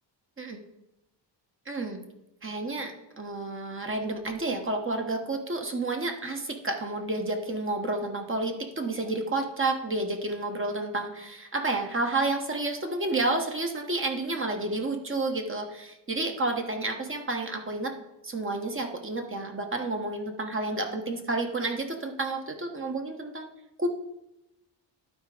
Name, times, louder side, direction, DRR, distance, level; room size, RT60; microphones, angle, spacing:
voice 1, 1.7-2.0 2.4-17.9 18.2-23.5 23.8-23.9, right 2 dB, 25° right, 4 dB, 1.2 m, -30 dB
11.5 x 4.7 x 5.0 m, 0.91 s
wide cardioid pair, 130°, 45 cm